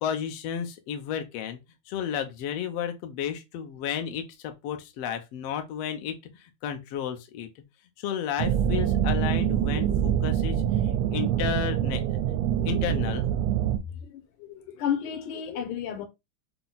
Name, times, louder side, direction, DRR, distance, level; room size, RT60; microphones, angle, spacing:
voice 1, 0.0-1.6 1.9-7.5 8.0-12.2 12.6-13.3, left 8 dB, 70° left, 1.6 m, -32 dB
sound 1, 8.4-13.8, right 10 dB, 80° right, 1.6 m, -25 dB
voice 2, 13.9-16.1, left 9 dB, 90° left, 2.4 m, -32 dB
6.0 x 2.3 x 3.9 m
omnidirectional pair, 3.4 m